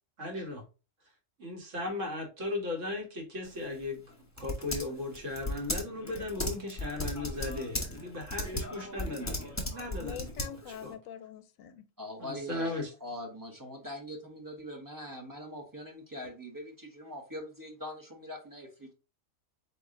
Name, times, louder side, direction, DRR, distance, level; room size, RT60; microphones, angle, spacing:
voice 1, 0.2-0.6 1.4-4.0 4.4-10.4 10.8-11.0 12.2-12.9, left 2 dB, 65° right, 1.9 m, -37 dB
Typing, 3.4-10.9, left 1 dB, 15° left, 0.9 m, -37 dB
voice 2, 10.0-11.8, left 9 dB, 85° left, 1.0 m, -44 dB
voice 3, 12.0-12.7 13.0-18.9, equal, 15° right, 1.1 m, -42 dB
4.3 x 3.0 x 3.7 m
omnidirectional pair, 1.4 m